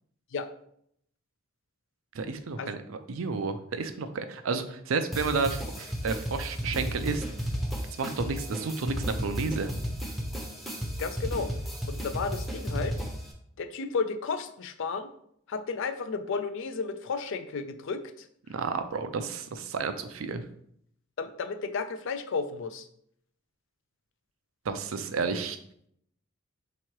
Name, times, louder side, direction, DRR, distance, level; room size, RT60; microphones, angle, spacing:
voice 1, 2.1-7.2 8.0-9.7 18.5-20.4 24.6-25.6, right 4 dB, 85° right, 9 dB, 0.5 m, -31 dB
sound 1, 5.1-13.3, equal, ahead, 0.6 m, -34 dB
voice 2, 11.0-11.5 11.9-13.0 13.6-15.1 15.5-18.3 21.2-22.9, left 4 dB, 65° left, 10 dB, 0.4 m, -33 dB
3.6 x 3.0 x 4.5 m, 0.70 s
head